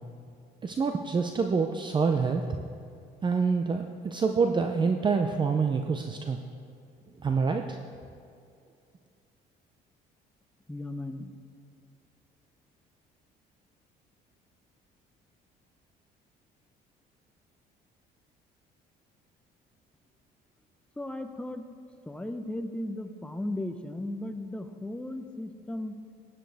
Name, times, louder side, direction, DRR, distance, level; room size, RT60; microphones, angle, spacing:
voice 1, 0.6-2.4 3.2-6.4 7.2-7.8, right 5 dB, 25° right, 5 dB, 0.6 m, -26 dB
voice 2, 10.7-11.3 21.0-21.6 22.1-26.0, left 1 dB, 5° left, 7 dB, 0.7 m, -36 dB
16.5 x 10.0 x 3.5 m, 2.4 s
cardioid pair, 110°, 17 cm